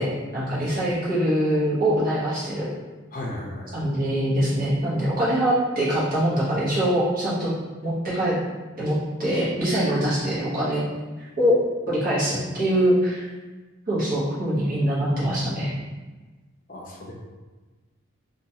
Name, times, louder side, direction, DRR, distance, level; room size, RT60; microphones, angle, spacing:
voice 1, 0.0-2.7 3.7-7.5 7.8-8.4 8.8-10.8 11.2-11.6 11.9-13.3 13.9-15.7, equal, 40° right, -8 dB, 0.9 m, -23 dB
voice 2, 3.1-3.8 16.7-17.1, left 1 dB, 40° left, -2 dB, 0.5 m, -35 dB
2.9 x 2.2 x 2.8 m, 1.3 s
head